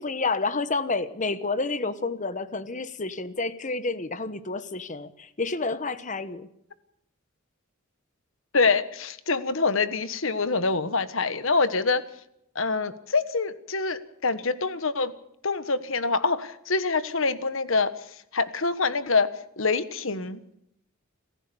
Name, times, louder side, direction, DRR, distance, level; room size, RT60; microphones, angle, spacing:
voice 1, 0.0-6.5, left 3 dB, 35° left, 1.1 m, -29 dB
voice 2, 8.5-12.0 12.5-15.1 15.4-17.9 18.3-19.3 19.6-20.5, left 4 dB, 65° left, 1.4 m, -25 dB
27.0 x 15.0 x 7.1 m
head